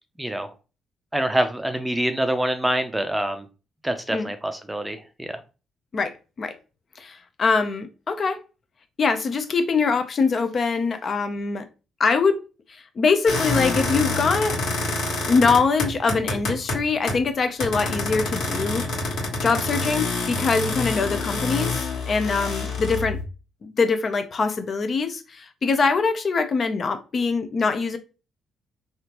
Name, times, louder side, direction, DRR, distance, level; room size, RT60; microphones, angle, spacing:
voice 1, 0.2-0.5 1.1-3.5 3.8-5.4, right 1 dB, 10° right, 0.5 m, -25 dB
voice 2, 5.9-6.6 7.0-8.4 9.0-11.7 12.0-12.4 12.7-14.6 15.3-18.8 19.4-23.2 23.6-28.0, left 4 dB, 45° left, 0.5 m, -23 dB
sound 1, 13.3-17.3 17.6-23.2, left 3 dB, 80° left, 1.5 m, -27 dB
3.5 x 2.4 x 2.9 m
cardioid pair, 90°, 0 cm